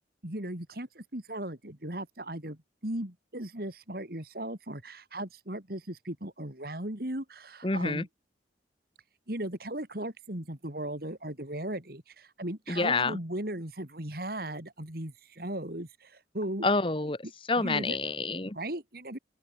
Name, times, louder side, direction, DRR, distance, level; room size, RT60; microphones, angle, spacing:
voice 1, 0.2-8.1 9.3-16.7 17.6-18.0 18.5-19.2, right 1 dB, 55° right, 3.5 m, -37 dB
voice 2, 7.6-8.0 12.7-13.2 16.6-17.2 17.5-18.6, left 3 dB, 30° left, 1.4 m, -28 dB
open air
head